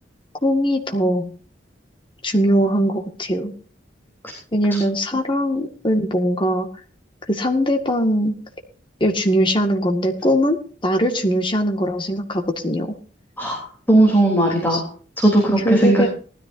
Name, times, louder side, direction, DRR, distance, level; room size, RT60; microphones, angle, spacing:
voice 1, 0.4-1.3 2.2-3.5 4.5-6.7 7.3-8.4 9.0-10.6 10.8-12.9 14.7-14.8 15.6-16.1, equal, 25° left, 4 dB, 1.9 m, -20 dB
voice 2, 13.9-14.8 15.2-16.0, right 1 dB, 10° left, -1 dB, 3.4 m, -16 dB
19.0 x 13.5 x 2.7 m, 0.41 s
head